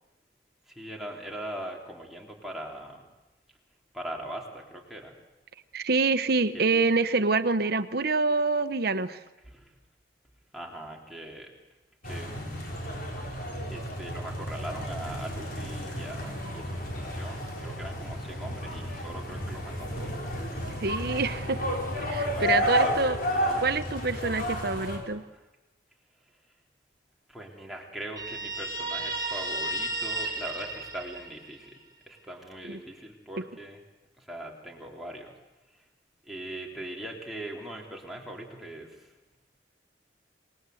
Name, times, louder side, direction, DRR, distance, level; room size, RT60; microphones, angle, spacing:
voice 1, 0.7-3.0 3.9-5.2 6.5-6.9 9.4-9.7 10.5-11.5 12.0-12.7 13.7-20.2 22.3-23.7 25.3-25.4 27.3-33.8 34.2-35.3 35.7-35.8 36.3-39.1, right 1 dB, ahead, -2 dB, 3.5 m, -41 dB
voice 2, 5.7-9.2 20.8-21.6 22.0-23.2 23.6-25.2 32.7-32.8, right 4 dB, 60° right, 12 dB, 1.0 m, -26 dB
sound 1, 12.0-25.0, equal, 55° left, 5.6 m, -32 dB
Guitar, 28.1-31.7, right 2 dB, 25° right, 3.8 m, -33 dB
27.5 x 20.5 x 7.9 m, 1.0 s
head